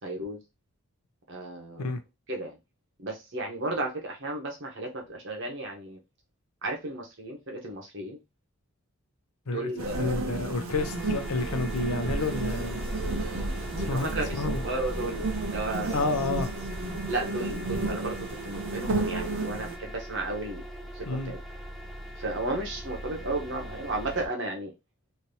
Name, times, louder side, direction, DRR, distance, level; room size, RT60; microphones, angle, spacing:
voice 1, 0.0-0.4 1.3-1.9 2.3-2.6 3.0-6.0 6.6-8.2 9.5-10.2 13.8-16.2 17.1-18.2 18.4-20.6 20.9-21.4 22.2-24.7, right 2 dB, 55° right, 1.0 m, -34 dB
voice 2, 9.5-12.8 13.8-14.1 14.4-14.6 15.9-16.5 21.1-21.4, left 3 dB, 90° left, 0.7 m, -30 dB
sound 1, 9.8-19.8, right 2 dB, 70° right, 0.7 m, -33 dB
sound 2, 10.6-24.3, equal, ahead, 0.5 m, -39 dB
3.3 x 2.8 x 2.7 m
head